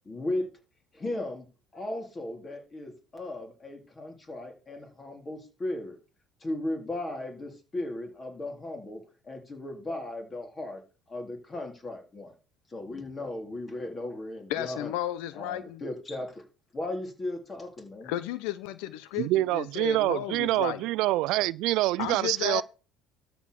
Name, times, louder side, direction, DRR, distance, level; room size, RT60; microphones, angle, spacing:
voice 1, 0.1-0.5 0.9-1.5 1.7-6.0 6.4-10.8 11.1-12.3 12.7-14.9 15.3-16.4 16.7-18.1, left 1 dB, 25° left, 3.7 m, -36 dB
voice 2, 14.5-15.8 18.0-20.8 22.0-22.6, left 13 dB, 80° left, 0.8 m, -33 dB
voice 3, 19.2-22.6, right 17 dB, 70° right, 0.4 m, -26 dB
12.5 x 4.5 x 6.9 m
supercardioid pair, 105°, 0 cm